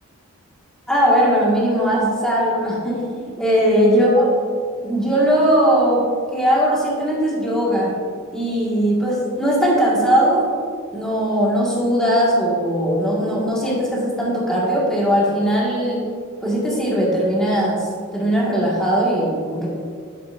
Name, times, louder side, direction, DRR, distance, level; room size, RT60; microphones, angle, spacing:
voice 1, 0.9-4.3 4.8-6.0 6.3-7.9 8.3-10.4 10.9-16.0 16.4-17.9 18.1-19.7, equal, 5° left, -6 dB, 1.8 m, -19 dB
11.0 x 7.7 x 2.6 m, 2.1 s
head